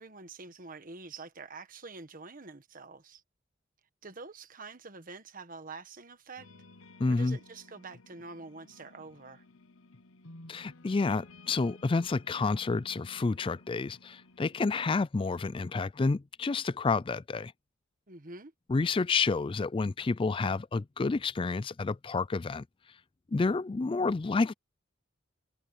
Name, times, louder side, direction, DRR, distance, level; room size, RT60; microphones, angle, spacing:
voice 1, 0.0-3.2 4.0-6.5 7.1-9.4 18.1-18.5, right 3 dB, 40° right, 1.4 m, -46 dB
sound 1, 6.4-14.6, left 2 dB, 80° left, 1.2 m, -55 dB
voice 2, 7.0-7.4 10.5-17.5 18.7-22.6 23.3-24.5, left 4 dB, 25° left, 0.4 m, -29 dB
head